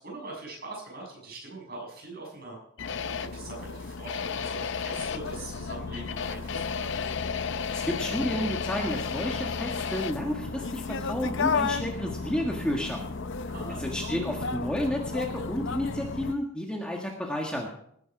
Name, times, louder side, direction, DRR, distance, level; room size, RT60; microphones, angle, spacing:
voice 1, 0.0-2.6 3.2-6.9 13.5-13.8, right 2 dB, 45° right, -1 dB, 6.8 m, -42 dB
sound 1, 2.8-16.4, left 5 dB, 55° left, 0.6 m, -32 dB
voice 2, 7.7-13.1 13.8-17.7, equal, 5° left, -1 dB, 1.6 m, -31 dB
19.5 x 10.0 x 4.8 m, 0.70 s
head